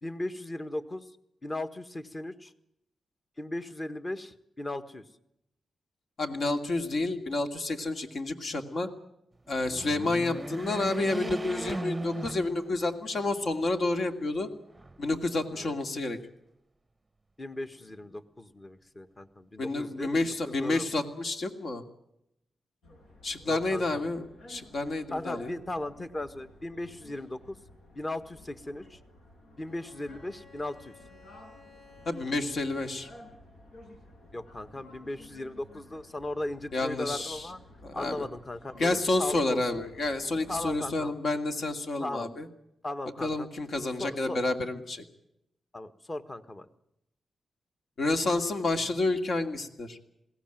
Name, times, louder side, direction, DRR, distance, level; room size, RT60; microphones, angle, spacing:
voice 1, 0.0-1.0 1.4-2.5 3.4-5.0 15.5-15.7 17.4-20.3 20.6-20.8 23.5-24.0 25.1-27.6 27.9-29.0 29.6-30.9 34.3-37.6 37.9-39.8 40.5-41.2 42.0-42.3 42.8-43.5 44.0-44.4 45.7-46.7, left 1 dB, 25° left, 11 dB, 1.5 m, -37 dB
voice 2, 6.2-8.9 9.5-14.5 15.0-16.2 19.6-21.8 23.2-25.5 32.1-33.1 36.7-37.5 37.8-38.3 38.8-42.5 43.2-45.0 48.0-50.0, left 2 dB, 60° left, 6 dB, 2.5 m, -29 dB
sound 1, 9.5-13.1 13.6-13.7 14.7-15.5, right 2 dB, 20° right, 0.7 m, -37 dB
sound 2, 22.8-41.0, left 1 dB, 85° left, 5.8 m, -53 dB
Bowed string instrument, 29.7-33.5, left 4 dB, 45° left, 3.3 m, -56 dB
21.5 x 17.5 x 9.2 m, 0.81 s
cardioid pair, 90°, 0 cm